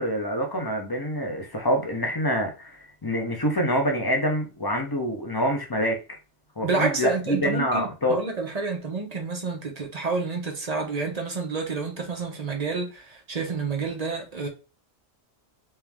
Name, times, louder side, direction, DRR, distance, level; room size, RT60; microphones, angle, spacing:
voice 1, 0.0-6.0 6.6-8.2, equal, 25° left, 0.5 m, -26 dB
voice 2, 6.6-14.5, right 4 dB, 40° right, 0.7 m, -29 dB
3.3 x 3.0 x 3.5 m
omnidirectional pair, 1.4 m